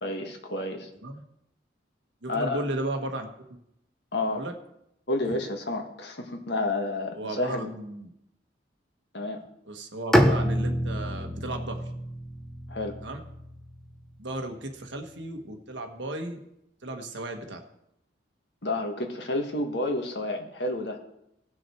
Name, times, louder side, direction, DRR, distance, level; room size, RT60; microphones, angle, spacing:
voice 1, 0.0-0.9 2.3-2.6 4.1-4.4 5.1-7.7 9.1-9.4 12.7-13.0 18.6-21.0, left 2 dB, 65° left, 3 dB, 1.7 m, -30 dB
voice 2, 2.2-3.3 4.3-4.5 7.1-8.1 9.6-11.9 13.0-13.2 14.2-16.4 16.8-17.6, right 1 dB, 75° right, 4 dB, 1.5 m, -34 dB
Bowed string instrument, 10.1-14.1, equal, 5° left, 0.7 m, -27 dB
18.5 x 6.3 x 4.6 m, 0.80 s
head